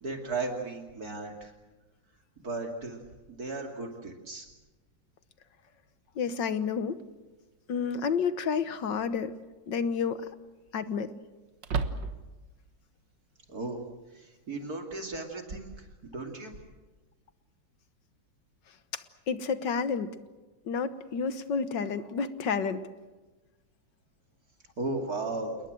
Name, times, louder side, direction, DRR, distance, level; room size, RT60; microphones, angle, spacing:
voice 1, 0.0-1.5 2.4-3.0 3.3-4.5 13.5-13.8 14.1-16.6 24.8-25.6, right 3 dB, 55° right, 3 dB, 3.1 m, -35 dB
voice 2, 6.2-7.0 7.7-9.4 9.7-10.2 10.7-11.1 19.3-20.2 20.7-22.8, left 6 dB, 75° left, 12 dB, 1.8 m, -30 dB
sound 1, 7.0-7.1 8.9-9.3 9.7-9.8 11.6-12.5, right 5 dB, 80° right, 2.1 m, -33 dB
28.5 x 20.5 x 7.6 m, 1.2 s
omnidirectional pair, 1.9 m